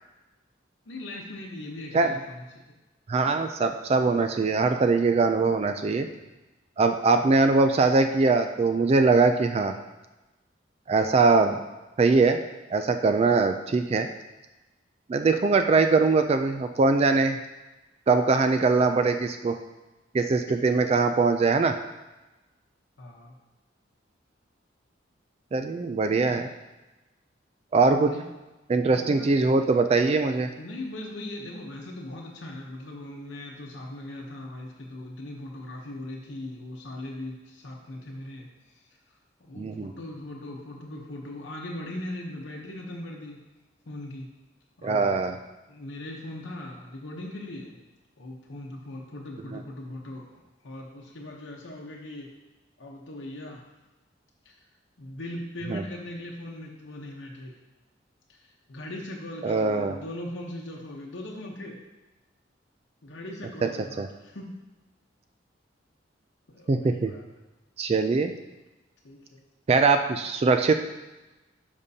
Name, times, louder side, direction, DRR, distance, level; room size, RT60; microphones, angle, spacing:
voice 1, 0.9-2.4 6.0-6.2 23.0-23.3 26.2-26.5 27.9-28.2 28.9-29.3 30.6-38.9 39.4-43.4 43.9-44.3 44.8-45.3 45.7-47.8 48.2-52.3 52.8-53.6 54.4-54.6 55.0-57.6 58.3-61.8 63.0-64.5 66.5-67.2 69.0-69.4, left 1 dB, 70° left, -2 dB, 0.9 m, -39 dB
voice 2, 3.1-6.1 6.8-9.7 10.9-11.6 12.0-12.4 12.7-14.1 15.1-17.4 18.1-19.6 20.1-21.7 25.5-26.5 27.7-28.1 28.7-30.5 39.6-39.9 44.8-45.4 49.5-49.6 55.7-55.8 59.4-59.9 63.6-63.7 64.0-64.1 66.7-67.1 67.8-68.3 69.7-70.7, right 4 dB, 35° right, 7 dB, 0.3 m, -22 dB
12.0 x 5.2 x 2.8 m, 1.1 s
head